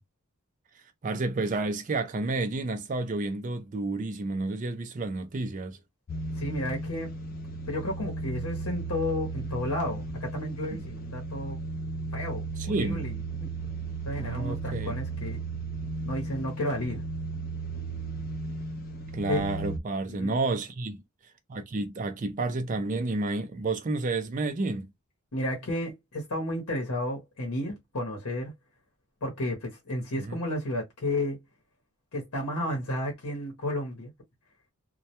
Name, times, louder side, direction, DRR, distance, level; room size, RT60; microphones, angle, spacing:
voice 1, 1.0-5.8 10.7-10.8 12.6-13.0 14.2-14.9 19.1-21.0 21.5-24.9 30.1-30.4, right 2 dB, 35° right, 0.4 m, -30 dB
sound 1, 6.1-19.8, right 3 dB, 40° left, 0.4 m, -35 dB
voice 2, 6.4-7.1 7.7-11.6 12.1-13.1 13.4-13.5 14.0-15.4 16.0-17.0 19.3-19.4 20.1-20.4 25.3-28.5 29.2-31.4 32.1-34.1, left 1 dB, 85° left, 0.8 m, -32 dB
2.2 x 2.1 x 2.8 m
head